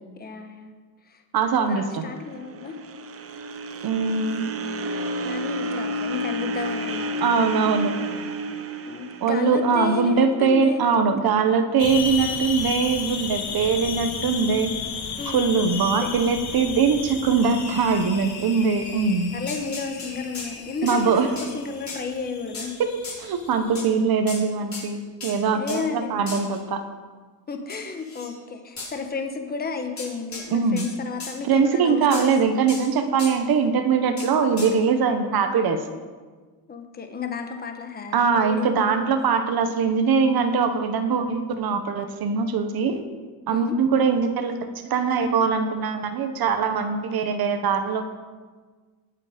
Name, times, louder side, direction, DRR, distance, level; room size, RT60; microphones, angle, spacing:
voice 1, 0.2-0.7 1.0-1.2 1.7-2.8 4.1-4.6 5.2-7.3 8.9-10.9 15.2-15.4 16.0-16.1 19.3-22.7 25.5-26.2 27.5-32.3 36.7-39.2 43.5-43.8, left 5 dB, 20° left, 5 dB, 1.2 m, -32 dB
voice 2, 1.3-2.0 3.8-4.5 7.2-8.0 9.2-14.8 15.2-19.3 20.8-21.3 22.8-26.8 30.5-30.8 31.4-35.8 38.1-43.0 43.5-44.6 44.8-48.0, right 5 dB, 50° right, 7 dB, 1.3 m, -22 dB
sound 1, 2.2-10.4, right 1 dB, 30° right, 0.9 m, -31 dB
sound 2, 11.8-23.8, left 6 dB, 55° left, 1.8 m, -34 dB
sound 3, 19.5-20.5 20.9-21.0 21.4-21.5 21.9-22.0 22.5-22.7 23.0-23.2 23.8-23.9 24.3-24.4 24.7-24.9 25.2-25.4 25.7-25.8 26.3-26.6 27.7-28.3 28.8-28.9 30.0-30.5 30.8-30.9 31.2-31.4 32.1-32.3 32.7-32.9 33.2-33.4 34.2-34.3 34.6-34.7, left 3 dB, 35° left, 5.3 m, -36 dB
19.5 x 8.3 x 5.2 m, 1.4 s
cardioid pair, 145°, 47 cm